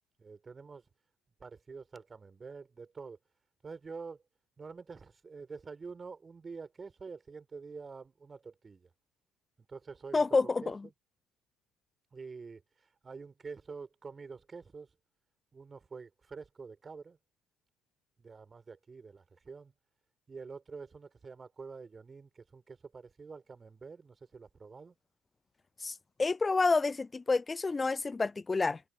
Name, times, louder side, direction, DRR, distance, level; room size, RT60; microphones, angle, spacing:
voice 1, 0.2-0.8 1.4-3.2 3.6-4.2 4.6-8.9 9.7-10.7 12.1-12.6 13.0-14.9 15.5-17.2 18.2-19.7 20.3-24.9, right 4 dB, 25° right, 3.4 m, -47 dB
voice 2, 10.1-10.9 25.8-28.8, left 3 dB, 20° left, 0.4 m, -29 dB
figure-of-eight pair, 55°, 0 cm